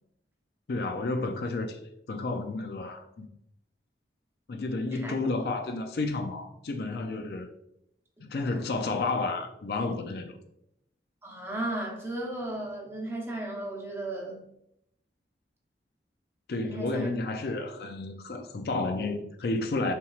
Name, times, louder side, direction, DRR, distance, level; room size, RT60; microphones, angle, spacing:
voice 1, 0.7-1.8 2.1-3.3 4.5-7.5 8.2-10.4 16.5-19.9, left 3 dB, 60° left, 0.4 m, -31 dB
voice 2, 11.2-14.5 16.6-17.1, right 1 dB, 15° right, 0.9 m, -35 dB
5.8 x 3.2 x 2.4 m
head